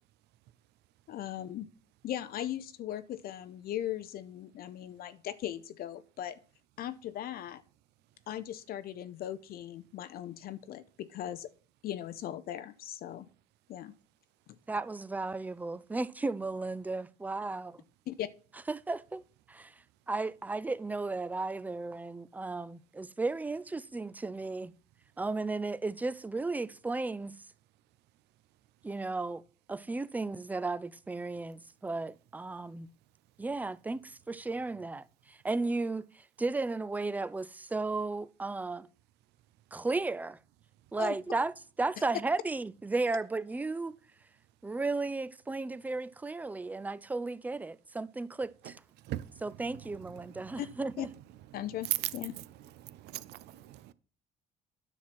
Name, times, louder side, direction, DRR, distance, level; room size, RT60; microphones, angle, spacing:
voice 1, 1.1-1.7 2.0-6.4 6.8-7.6 8.3-11.5 11.8-13.3 13.7-13.9 14.5-14.6 18.1-18.3 41.0-41.2 50.6-50.7 51.0-51.1 51.5-52.4, left 11 dB, 60° left, 0.6 m, -38 dB
voice 2, 14.7-17.8 18.7-19.2 19.5-19.7 20.1-24.7 25.2-27.4 28.8-29.4 29.7-32.9 33.4-36.1 36.4-38.9 39.7-40.4 40.9-44.0 44.6-48.8 49.4-51.1, right 3 dB, 10° right, 0.4 m, -34 dB
voice 3, 52.8-53.9, right 13 dB, 80° right, 0.6 m, -41 dB
9.8 x 6.2 x 4.2 m
cardioid pair, 110°, 17 cm